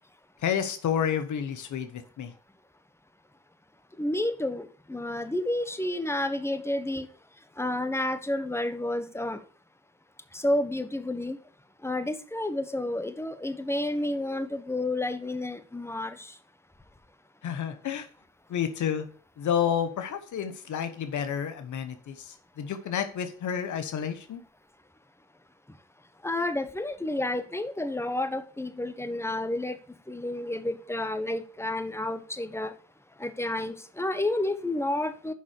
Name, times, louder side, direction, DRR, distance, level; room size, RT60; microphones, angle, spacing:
voice 1, 0.4-2.3 17.4-18.1 18.5-19.1 19.4-24.4, left 8 dB, 90° left, 1.1 m, -30 dB
voice 2, 4.0-4.6 4.9-7.1 7.6-9.4 10.3-11.4 11.8-16.2 26.2-29.8 30.1-32.7 33.2-35.3, left 1 dB, 10° left, 1.3 m, -30 dB
7.2 x 5.5 x 6.5 m
cardioid pair, 55°, 29 cm